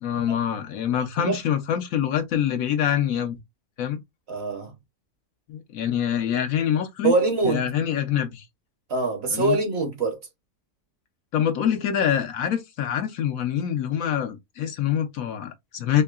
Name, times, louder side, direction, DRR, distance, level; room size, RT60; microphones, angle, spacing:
voice 1, 0.0-3.4 3.8-4.0 5.5-7.1 7.4-8.5 9.3-9.6 11.3-16.0, left 9 dB, 70° left, 1.0 m, -25 dB
voice 2, 4.3-4.7 7.0-7.7 8.9-10.2, right 3 dB, 50° right, 1.0 m, -24 dB
4.4 x 2.8 x 2.3 m
omnidirectional pair, 1.6 m